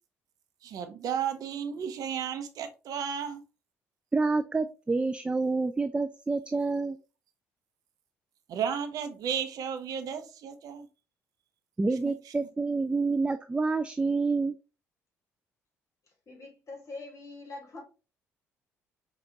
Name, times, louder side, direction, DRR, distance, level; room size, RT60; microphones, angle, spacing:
voice 1, 0.6-3.4 8.5-10.9 12.0-12.3, right 8 dB, 55° right, 0.6 m, -33 dB
voice 2, 4.1-7.0 11.8-14.6, right 3 dB, 15° right, 0.3 m, -28 dB
voice 3, 16.3-17.8, left 3 dB, 45° left, 1.5 m, -43 dB
5.0 x 2.3 x 2.8 m
figure-of-eight pair, 45°, 7 cm